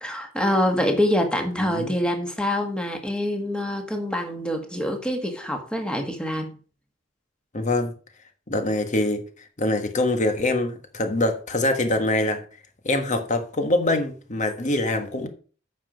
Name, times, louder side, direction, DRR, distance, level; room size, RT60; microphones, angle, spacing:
voice 1, 0.0-6.5, left 1 dB, 5° left, 1.7 m, -25 dB
voice 2, 1.6-2.0 7.5-7.9 8.5-9.2 9.6-12.4 12.8-15.3, left 1 dB, 40° left, 1.4 m, -24 dB
8.6 x 5.8 x 5.1 m
head